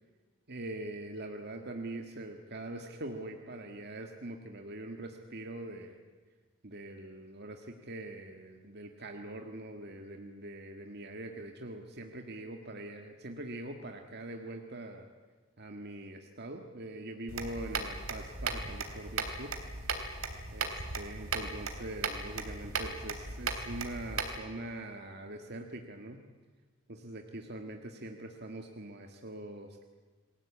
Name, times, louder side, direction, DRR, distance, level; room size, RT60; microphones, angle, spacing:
voice 1, 0.5-6.0 6.6-15.1 15.6-19.5 20.5-26.2 26.9-29.9, right 1 dB, 50° right, 4 dB, 1.8 m, -43 dB
sound 1, 17.3-24.4, right 4 dB, 80° right, 3.2 m, -37 dB
29.0 x 20.5 x 8.6 m, 1.3 s
head